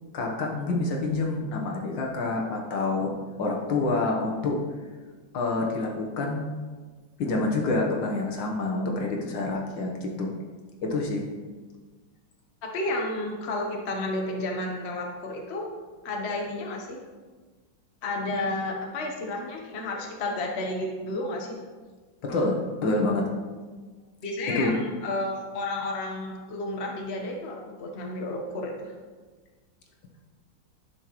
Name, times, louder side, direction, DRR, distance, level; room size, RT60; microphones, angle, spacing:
voice 1, 0.1-3.1 3.4-4.6 5.3-6.5 7.2-10.3 10.8-11.3 22.2-23.3 24.6-24.7, left 2 dB, 75° left, 0 dB, 1.8 m, -27 dB
voice 2, 12.6-15.7 16.0-17.0 18.0-21.6 24.2-28.9, left 2 dB, 40° left, 1 dB, 1.1 m, -31 dB
10.5 x 6.5 x 3.0 m, 1.4 s
omnidirectional pair, 2.1 m